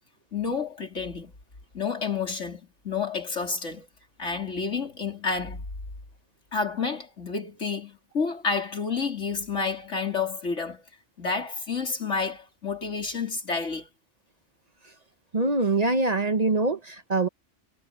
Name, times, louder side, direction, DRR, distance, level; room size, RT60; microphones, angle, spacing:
voice 1, 0.3-1.3 1.7-3.9 4.2-5.6 6.5-10.8 11.2-13.9, left 5 dB, 80° left, 3.9 m, -30 dB
voice 2, 15.3-17.3, right 3 dB, 35° right, 1.0 m, -24 dB
omnidirectional pair, 1.2 m